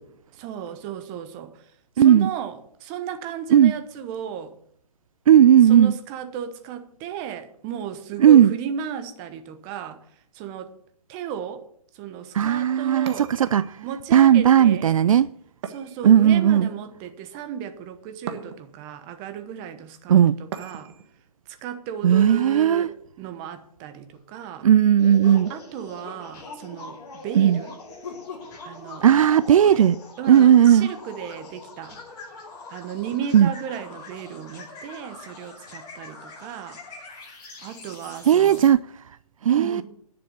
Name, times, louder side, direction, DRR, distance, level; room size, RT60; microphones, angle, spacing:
voice 1, 0.3-4.5 5.6-10.1 10.3-10.8 11.1-11.7 11.9-13.3 13.8-15.0 15.7-20.9 21.5-24.7 25.5-27.7 28.6-29.1 29.7-29.9 30.2-32.0 32.7-36.8 37.6-38.7 39.5-39.8, right 8 dB, 20° right, 1.0 m, -35 dB
voice 2, 2.0-2.3 3.5-3.7 5.3-5.9 8.2-8.5 12.3-13.6 14.1-15.3 16.0-16.7 20.1-20.4 22.0-22.9 24.6-25.5 27.3-27.6 29.0-30.0 30.3-30.9 33.3-33.5 38.3-38.8 39.4-39.8, right 9 dB, 60° right, 0.4 m, -15 dB
sound 1, 13.1-14.0 15.6-16.6 18.3-18.9 20.5-21.1, right 7 dB, 45° right, 1.4 m, -39 dB
sound 2, 24.1-24.3 25.2-25.5 26.0-26.6 28.0-28.5 29.2-29.8 30.4-30.6 32.2-32.3 33.0-33.2 33.7-33.8 34.5-34.7 35.4-35.5, left 4 dB, 55° left, 3.6 m, -42 dB
sound 3, 25.0-38.7, left 3 dB, 20° left, 5.4 m, -43 dB
10.5 x 6.9 x 9.3 m
hypercardioid pair, 155°, 20 cm